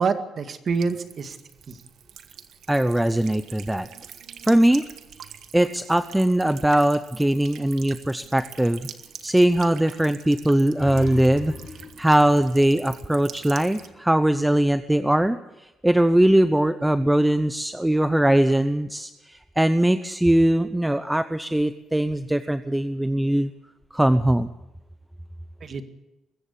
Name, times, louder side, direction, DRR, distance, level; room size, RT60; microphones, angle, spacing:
voice 1, 0.0-1.4 1.7-1.8 25.6-25.8, right 5 dB, 50° right, 8 dB, 2.1 m, -26 dB
Buzz / Water tap faucet / Trickle dribble, 0.7-13.9, right 9 dB, 70° right, 1.5 m, -45 dB
voice 2, 2.7-3.9 4.5-4.8 5.5-8.9 9.2-11.5 12.0-15.4 15.8-23.5 23.9-24.5, right 1 dB, 5° right, 11 dB, 0.8 m, -20 dB
sound 1, 10.8-13.9, left 4 dB, 40° left, 7.0 m, -40 dB
23.0 x 14.5 x 8.5 m, 0.97 s
cardioid pair, 90°, 0 cm